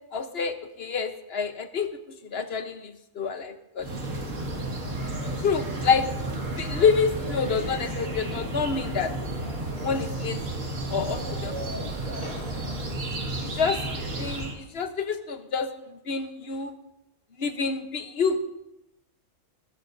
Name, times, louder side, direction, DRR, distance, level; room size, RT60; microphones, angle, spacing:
voice 1, 0.1-1.9 2.2-3.9 5.4-6.1 6.6-9.1 9.8-10.4 10.9-11.6 13.4-13.8 14.2-16.7 17.4-18.4, left 5 dB, 55° left, 8 dB, 1.1 m, -27 dB
sound 1, 3.8-14.6, right 2 dB, 80° right, 2.3 m, -32 dB
Conversation / Crowd, 6.6-12.8, left 1 dB, 75° left, 3.7 m, -46 dB
20.5 x 14.5 x 2.6 m, 0.89 s
omnidirectional pair, 1.3 m